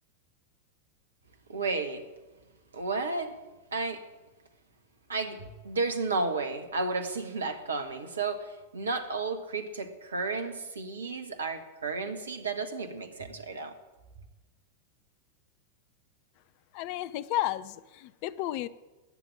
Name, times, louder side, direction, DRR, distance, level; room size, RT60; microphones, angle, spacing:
voice 1, 1.5-2.1 2.7-3.4 3.7-4.0 5.1-13.8, right 3 dB, 70° right, 9 dB, 1.6 m, -32 dB
voice 2, 16.7-18.7, left 14 dB, 45° left, 17 dB, 0.7 m, -32 dB
20.5 x 8.0 x 8.7 m, 1.2 s
figure-of-eight pair, 90°, 0 cm